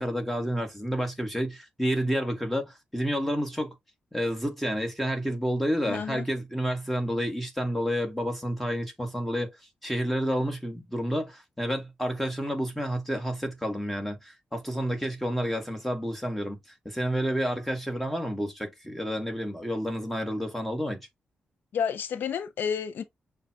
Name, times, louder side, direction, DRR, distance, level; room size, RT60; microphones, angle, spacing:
voice 1, 0.0-3.7 4.1-9.5 9.8-16.6 16.8-21.1, equal, 5° left, 1.4 m, -30 dB
voice 2, 5.9-6.2 21.7-23.0, left 7 dB, 75° left, 0.4 m, -30 dB
6.6 x 2.2 x 2.8 m
cardioid pair, 100°, 3 cm